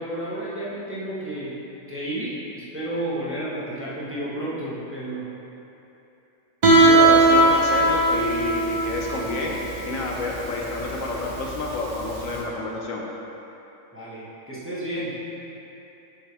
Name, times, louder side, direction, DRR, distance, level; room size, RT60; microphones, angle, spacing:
voice 1, 0.0-1.6 1.9-5.3 13.9-15.3, right 1 dB, 10° right, -10 dB, 1.2 m, -31 dB
Guitar, 6.6-12.3, right 2 dB, 35° right, 0.9 m, -19 dB
voice 2, 6.8-9.6 9.9-13.0, left 3 dB, 75° left, -2 dB, 1.2 m, -29 dB
6.7 x 5.8 x 3.4 m, 2.9 s
omnidirectional pair, 1.4 m